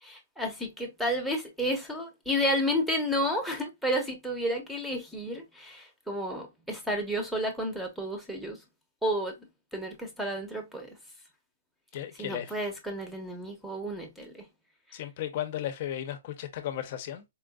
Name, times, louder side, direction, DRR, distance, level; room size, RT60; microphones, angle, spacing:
voice 1, 0.0-8.6 9.0-9.4 9.7-11.0 12.2-14.5, equal, ahead, 0.9 m, -31 dB
voice 2, 11.9-12.5 14.9-17.2, left 11 dB, 40° left, 0.8 m, -35 dB
4.5 x 2.6 x 2.3 m
hypercardioid pair, 165°, 0 cm